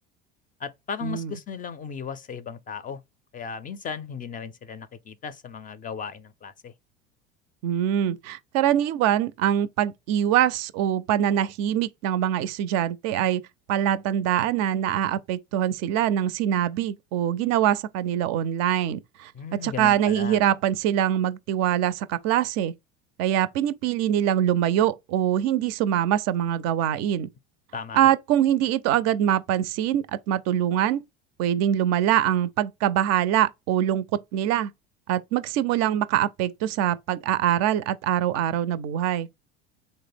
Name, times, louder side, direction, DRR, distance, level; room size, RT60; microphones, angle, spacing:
voice 1, 0.6-3.0 3.3-6.7 19.3-20.4 27.7-28.1, left 6 dB, 25° left, 0.4 m, -36 dB
voice 2, 7.6-13.4 13.7-19.3 19.6-22.7 23.2-27.3 27.9-31.0 31.4-34.1 34.3-34.7 35.1-39.3, right 11 dB, 55° right, 0.4 m, -24 dB
3.4 x 2.0 x 3.3 m
hypercardioid pair, 85°, 31 cm